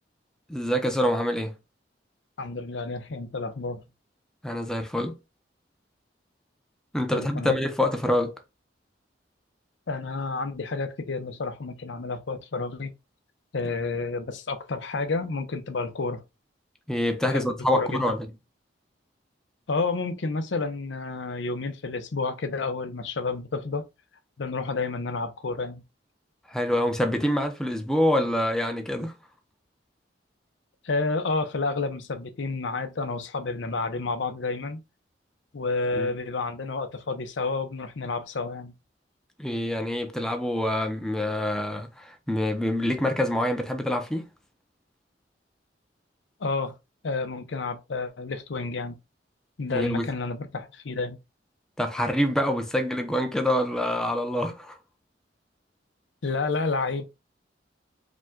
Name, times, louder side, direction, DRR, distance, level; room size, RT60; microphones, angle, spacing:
voice 1, 0.5-1.6 4.4-5.2 6.9-8.3 16.9-18.3 26.5-29.1 36.0-36.1 39.4-44.3 49.7-50.1 51.8-54.8, left 1 dB, 5° left, 0.6 m, -26 dB
voice 2, 2.4-3.8 7.1-7.6 9.9-12.9 13.5-16.2 17.3-17.5 17.7-18.0 19.7-23.9 24.4-25.8 30.8-34.8 35.5-38.7 46.4-46.7 47.0-49.0 49.6-51.2 56.2-57.0, left 3 dB, 80° left, 0.6 m, -30 dB
5.1 x 2.2 x 3.7 m
head